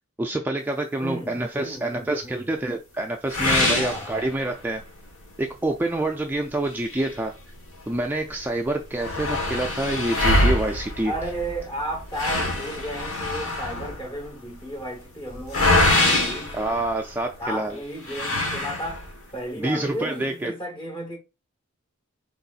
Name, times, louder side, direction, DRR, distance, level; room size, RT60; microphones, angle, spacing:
voice 1, 0.2-4.8 5.4-7.3 7.9-11.1 16.5-17.8 19.6-20.5, right 2 dB, 10° right, 0.3 m, -27 dB
voice 2, 1.0-2.5 3.8-4.3 11.0-16.6 17.4-19.1 19.3-21.2, right 1 dB, 25° left, 1.1 m, -34 dB
sound 1, 3.3-4.8 5.2-5.3 5.8-5.9 6.6-8.0 8.3-8.4 8.6-17.4 18.0-19.2, left 2 dB, 70° left, 1.4 m, -25 dB
4.6 x 4.0 x 2.4 m
head